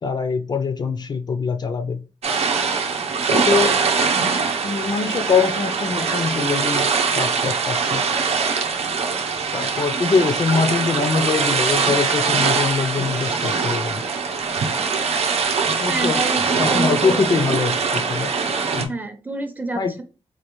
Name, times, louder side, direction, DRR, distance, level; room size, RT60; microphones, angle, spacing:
voice 1, 0.0-2.0 3.3-3.8 4.6-6.8 7.1-8.0 9.5-14.0 15.7-16.2 16.6-18.3 18.7-18.9 19.8-19.9, left 5 dB, 45° left, 7 dB, 0.4 m, -23 dB
sound 1, 2.2-18.9, right 5 dB, 90° right, 0.7 m, -22 dB
voice 2, 15.9-17.2 18.9-20.0, right 2 dB, 15° right, 6 dB, 0.5 m, -27 dB
4.2 x 2.4 x 3.0 m, 0.34 s
wide cardioid pair, 165°, 10 cm